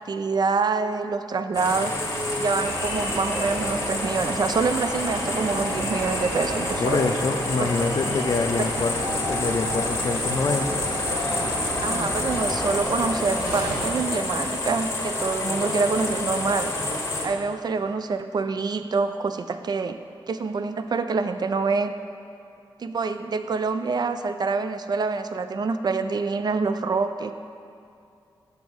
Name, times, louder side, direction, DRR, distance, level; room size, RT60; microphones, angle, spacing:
voice 1, 0.0-1.9 2.4-7.1 7.6-7.7 8.6-8.7 11.8-16.7 17.2-20.0 20.3-21.9 22.8-27.3, right 4 dB, 50° right, 10 dB, 0.3 m, -26 dB
sound 1, 1.5-17.3, left 2 dB, 30° left, 1.1 m, -29 dB
sound 2, 2.6-13.8, right 1 dB, 85° right, 1.7 m, -32 dB
voice 2, 6.8-9.0 9.3-10.8, left 4 dB, 45° left, 7 dB, 0.4 m, -25 dB
5.2 x 4.9 x 6.2 m, 2.5 s
cardioid pair, 70°, 9 cm